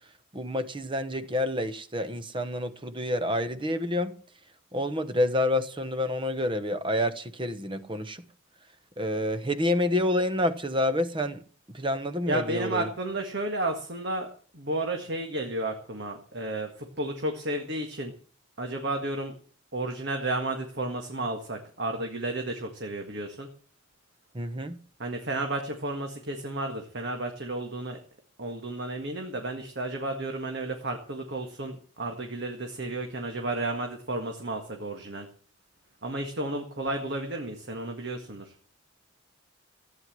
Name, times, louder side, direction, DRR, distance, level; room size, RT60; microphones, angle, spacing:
voice 1, 0.3-4.1 4.7-8.2 9.0-11.4 11.7-12.9 24.3-24.8, left 1 dB, 25° right, 1.1 m, -28 dB
voice 2, 12.3-14.3 14.5-18.1 18.6-19.3 19.7-23.5 25.0-28.0 28.4-35.3 36.0-38.5, right 2 dB, 55° right, 1.9 m, -32 dB
15.0 x 9.5 x 7.6 m
head